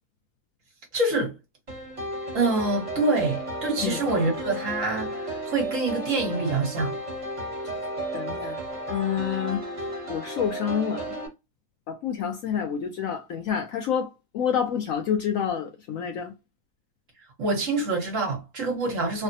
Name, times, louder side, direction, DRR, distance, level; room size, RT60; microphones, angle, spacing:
voice 1, 0.9-1.3 2.3-6.9 17.4-19.2, right 2 dB, 55° right, 1.3 m, -26 dB
sound 1, 1.7-11.3, right 1 dB, 25° right, 0.9 m, -33 dB
voice 2, 8.1-8.6 8.9-9.6 10.1-11.1 11.9-16.3, left 8 dB, 70° left, 0.8 m, -28 dB
3.2 x 2.1 x 2.6 m
omnidirectional pair, 1.7 m